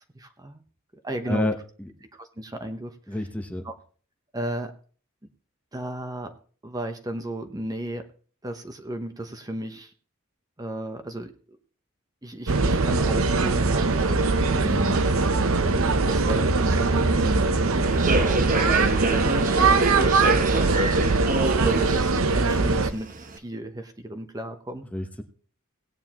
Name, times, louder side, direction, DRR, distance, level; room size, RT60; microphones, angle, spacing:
voice 1, 0.1-0.6 1.0-1.5 2.1-3.2 3.6-3.7 4.3-4.7 5.7-6.3 6.6-8.0 8.4-9.9 10.6-11.3 12.2-14.8 15.5-21.1 21.6-24.8, right 1 dB, 20° right, 7 dB, 0.9 m, -34 dB
voice 2, 1.3-1.9 3.1-3.6 14.6-15.0 24.9-25.2, left 1 dB, 5° left, 6 dB, 1.0 m, -29 dB
sound 1, 12.5-22.9, right 3 dB, 85° right, 0.8 m, -22 dB
Human voice / Subway metro underground, 17.8-23.4, right 2 dB, 40° right, 1.0 m, -28 dB
17.5 x 9.3 x 3.0 m, 0.42 s
head